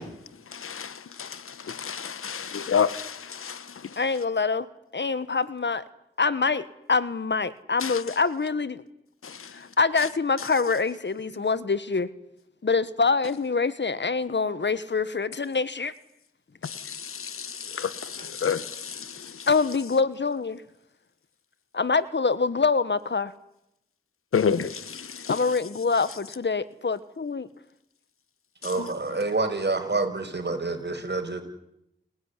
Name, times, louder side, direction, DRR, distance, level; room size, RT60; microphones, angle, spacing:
voice 1, 1.8-3.1 17.8-17.9 18.4-18.6 24.3-24.7, left 7 dB, 90° left, 1.1 m, -25 dB
voice 2, 4.0-4.7 4.9-5.8 6.2-8.8 9.5-12.1 12.6-15.9 19.5-20.6 21.7-23.3 25.3-27.5, left 4 dB, 60° left, 1.5 m, -25 dB
voice 3, 28.6-31.4, right 3 dB, 55° right, 6.2 m, -27 dB
29.5 x 16.5 x 9.9 m
cardioid pair, 45°, 21 cm